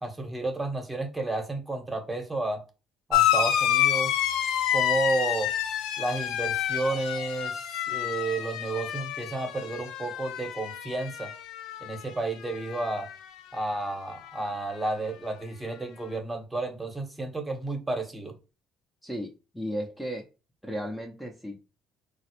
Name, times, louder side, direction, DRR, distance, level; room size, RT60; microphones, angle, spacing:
voice 1, 0.0-2.6 3.1-4.1 4.7-5.5 6.0-11.3 11.8-13.1 13.5-18.3, right 2 dB, 15° right, 1.0 m, -31 dB
sound 1, 3.1-12.1 12.4-13.2 14.3-14.4, left 11 dB, 75° left, 0.4 m, -28 dB
voice 2, 19.0-20.3 20.6-21.6, equal, 5° left, 0.6 m, -35 dB
4.0 x 2.0 x 2.9 m
supercardioid pair, 85°, 0 cm